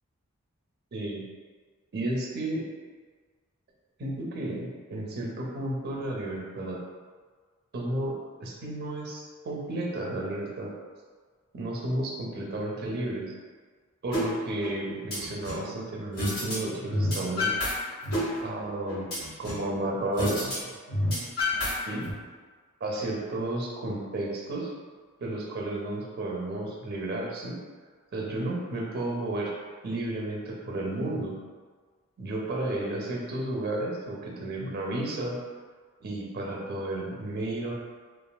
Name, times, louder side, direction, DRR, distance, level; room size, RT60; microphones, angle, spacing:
voice 1, 0.9-1.2 1.9-2.7 4.0-6.8 7.7-10.7 11.5-13.3 14.0-17.5 18.4-19.1 19.4-20.5 21.9-22.1 22.8-24.7 25.2-27.6 28.1-29.5 29.8-31.4 32.2-35.4 36.0-37.7, right 1 dB, 45° right, -1 dB, 0.5 m, -32 dB
sound 1, 14.1-14.2 14.6-15.7 16.2-16.6 16.8-17.7 18.0-19.7 20.2-20.5 20.8-22.1, left 1 dB, 80° left, 1.3 m, -29 dB
3.2 x 2.4 x 2.2 m, 1.5 s
head